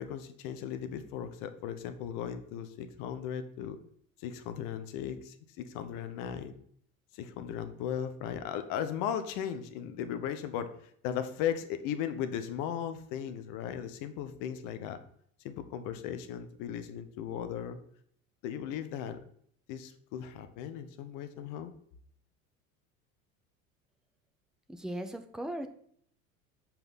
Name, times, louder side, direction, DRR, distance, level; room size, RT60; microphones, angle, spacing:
voice 1, 0.0-3.8 4.2-6.6 7.1-10.7 11.0-15.0 15.4-17.8 18.4-19.2 19.7-21.7, left 9 dB, 45° left, 10 dB, 0.9 m, -37 dB
voice 2, 24.7-25.7, right 1 dB, ahead, 7 dB, 0.5 m, -37 dB
5.3 x 4.7 x 5.6 m, 0.64 s
figure-of-eight pair, 65°, 41 cm